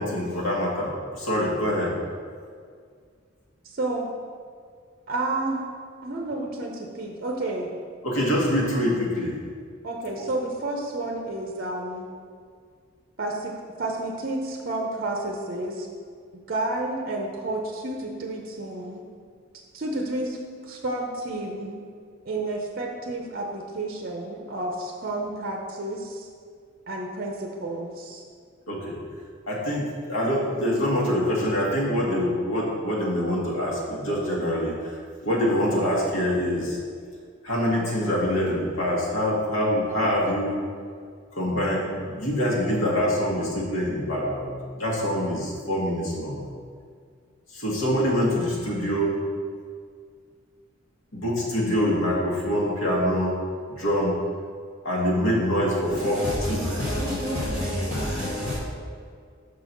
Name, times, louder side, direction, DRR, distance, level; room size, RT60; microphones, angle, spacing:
voice 1, 0.0-1.9 8.0-9.4 28.7-29.0 29.5-35.0 35.2-36.8 37.4-40.6 41.3-46.4 47.5-49.1 51.1-53.4 53.7-54.2 54.8-56.2 56.5-56.6, equal, 90° left, 1.7 m, -25 dB
voice 2, 3.6-4.1 5.1-5.6 6.0-7.7 9.8-12.1 13.2-15.9 16.5-19.0 19.7-20.4 20.6-21.8 22.3-26.3 26.9-28.2, right 2 dB, 50° right, 0.7 m, -30 dB
voice 3, 55.8-58.6, left 1 dB, 30° left, 1.2 m, -28 dB
6.1 x 4.0 x 6.0 m
head